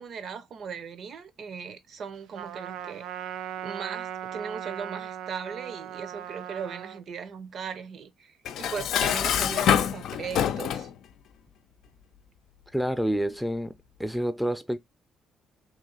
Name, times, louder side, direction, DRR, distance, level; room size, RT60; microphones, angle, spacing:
voice 1, 0.0-3.1 3.6-10.9, right 6 dB, 60° right, 0.8 m, -38 dB
Trumpet, 2.3-7.0, right 10 dB, 85° right, 0.3 m, -38 dB
Dishes pots and pans, 8.5-10.9, left 9 dB, 80° left, 0.4 m, -25 dB
voice 2, 12.7-13.7 14.0-14.8, equal, ahead, 0.5 m, -28 dB
3.2 x 2.7 x 3.9 m
cardioid pair, 90°, 0 cm